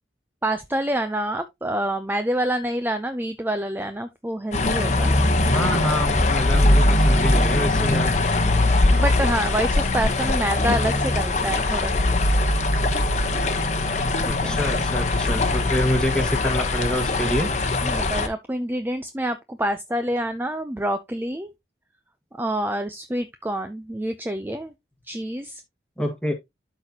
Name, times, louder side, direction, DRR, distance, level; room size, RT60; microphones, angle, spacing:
voice 1, 0.4-5.1 7.4-8.1 8.4-11.9 14.2-14.6 17.8-21.5 22.4-24.7 25.0-25.6, right 1 dB, 10° right, 0.5 m, -27 dB
sound 1, 4.5-18.3, left 2 dB, 40° left, 0.9 m, -21 dB
voice 2, 5.5-8.1 14.3-17.5 26.0-26.3, equal, 5° left, 1.6 m, -26 dB
12.0 x 4.1 x 2.8 m
head